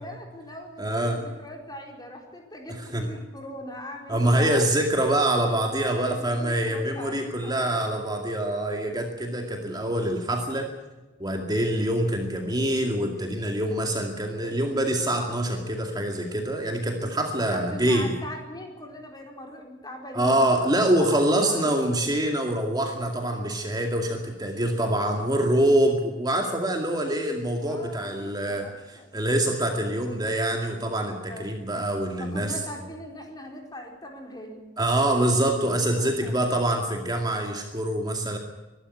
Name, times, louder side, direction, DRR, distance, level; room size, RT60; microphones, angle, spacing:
voice 1, 0.0-4.6 5.5-7.7 17.4-21.8 27.6-29.1 29.7-30.2 31.3-31.7 32.1-34.6 35.8-36.5, left 1 dB, 20° left, 2 dB, 4.6 m, -41 dB
voice 2, 0.8-1.2 2.7-3.1 4.1-10.7 11.2-18.1 20.1-32.5 34.8-38.4, right 1 dB, 20° right, 3 dB, 2.2 m, -25 dB
24.0 x 12.5 x 9.9 m, 1.1 s
head